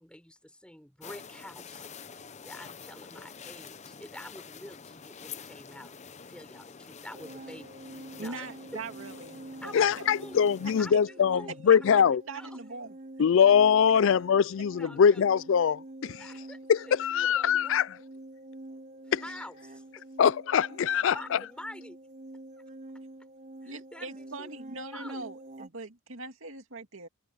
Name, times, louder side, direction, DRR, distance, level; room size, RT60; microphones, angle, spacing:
voice 1, 0.0-1.9 2.4-5.9 6.3-8.8 9.6-10.5 10.8-12.0 12.3-12.6 14.8-15.2 16.2-16.6 16.9-17.7 19.2-19.8 20.8-22.0 23.6-24.5 24.9-25.3, left 1 dB, 5° left, 6.2 m, -47 dB
sound 1, 1.0-10.9, left 6 dB, 35° left, 0.7 m, -47 dB
sound 2, 7.1-25.7, right 2 dB, 40° right, 4.3 m, -47 dB
voice 2, 8.2-9.4 9.6-10.1 10.6-10.7 12.3-13.0 23.6-27.1, right 3 dB, 70° right, 2.5 m, -41 dB
voice 3, 9.7-12.2 13.2-16.3 16.7-17.9 19.1-19.2 20.2-21.4, left 7 dB, 65° left, 0.4 m, -23 dB
head